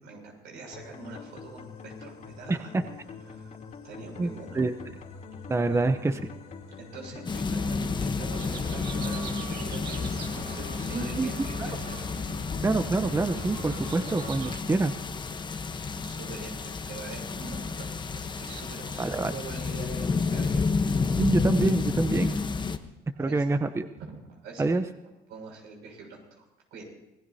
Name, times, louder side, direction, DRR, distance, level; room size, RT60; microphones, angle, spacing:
voice 1, 0.0-2.7 3.3-3.5 3.8-4.6 5.3-5.4 5.7-5.8 6.7-12.0 16.0-20.7 23.1-23.4 24.0-24.7 25.3-26.4 26.7-26.8, right 3 dB, 85° right, 0 dB, 6.4 m, -44 dB
sound 1, 0.7-15.8, left 5 dB, 50° left, 3.0 m, -45 dB
voice 2, 2.5-2.8 4.2-4.3 4.5-4.7 5.5-6.1 10.9-11.3 12.6-15.0 19.0-19.3 21.2-22.4 23.2-23.9 24.6-24.8, right 3 dB, 15° right, 9 dB, 0.7 m, -26 dB
sound 2, 7.2-22.8, left 4 dB, 25° left, 1.0 m, -31 dB
sound 3, 8.3-14.6, right 5 dB, 70° right, 2.4 m, -42 dB
26.0 x 18.5 x 2.8 m, 0.95 s
cardioid pair, 110°, 17 cm